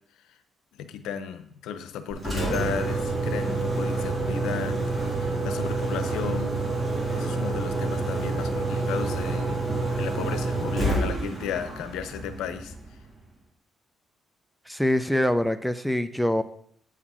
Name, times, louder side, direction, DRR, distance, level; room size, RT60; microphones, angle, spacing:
voice 1, 0.8-4.8 5.1-6.6 7.1-9.7 10.0-12.7, left 8 dB, 90° left, 9 dB, 0.7 m, -34 dB
Engine, 2.1-13.0, right 2 dB, 25° right, 2.9 m, -28 dB
voice 2, 14.7-16.4, left 1 dB, ahead, 9 dB, 0.6 m, -24 dB
8.3 x 5.0 x 5.6 m, 0.65 s
cardioid pair, 90°, 0 cm